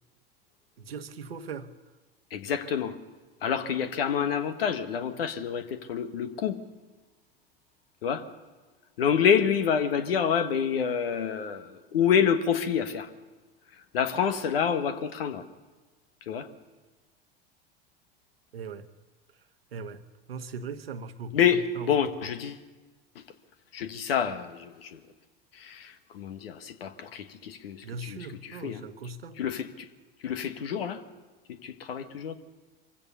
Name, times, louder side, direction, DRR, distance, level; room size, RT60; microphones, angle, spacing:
voice 1, 0.8-1.7 18.5-18.9 19.7-20.0 20.3-21.4 21.8-21.9 27.8-29.4, right 4 dB, 85° right, 1.2 m, -39 dB
voice 2, 2.3-3.0 3.4-6.6 8.0-8.3 9.0-13.1 13.9-15.4 16.3-16.5 21.3-22.6 23.1-23.2 23.7-25.0 25.5-28.8 29.4-29.9 30.2-31.0 31.5-32.3, left 7 dB, 75° left, 1.6 m, -28 dB
24.0 x 16.0 x 6.9 m
hypercardioid pair, 85°, 29 cm